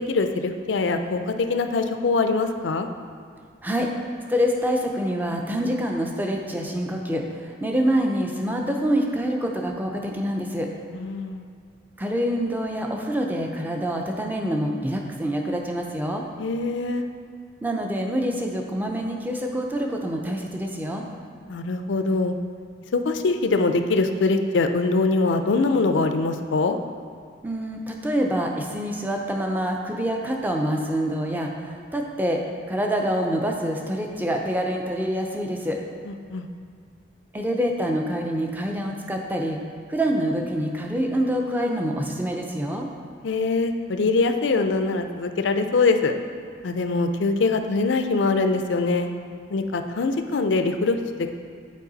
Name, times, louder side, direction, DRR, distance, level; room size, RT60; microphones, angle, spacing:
voice 1, 0.0-2.9 10.9-11.4 16.4-17.1 21.5-22.3 22.9-26.8 36.1-36.5 43.2-46.1 46.6-49.1 49.5-51.4, left 3 dB, 75° left, 7 dB, 0.4 m, -23 dB
voice 2, 4.3-10.7 12.0-16.2 17.6-21.0 27.4-32.4 32.7-35.8 37.3-39.6 39.9-42.9, equal, 10° right, 1 dB, 0.5 m, -26 dB
8.3 x 4.6 x 4.0 m, 2.1 s
head